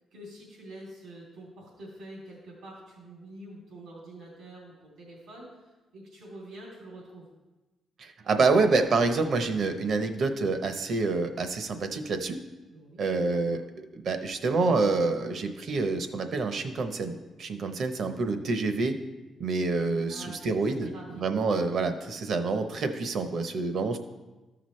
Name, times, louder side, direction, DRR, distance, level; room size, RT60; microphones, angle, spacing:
voice 1, 0.1-7.3 12.7-13.2 13.5-13.6 20.1-21.2, right 1 dB, 85° right, -4 dB, 2.9 m, -46 dB
voice 2, 8.0-12.4 13.0-13.6 13.9-18.9 19.4-20.9 21.1-24.0, right 3 dB, 60° right, 8 dB, 0.8 m, -27 dB
13.5 x 6.0 x 3.2 m, 1.1 s
cardioid pair, 115°, 0 cm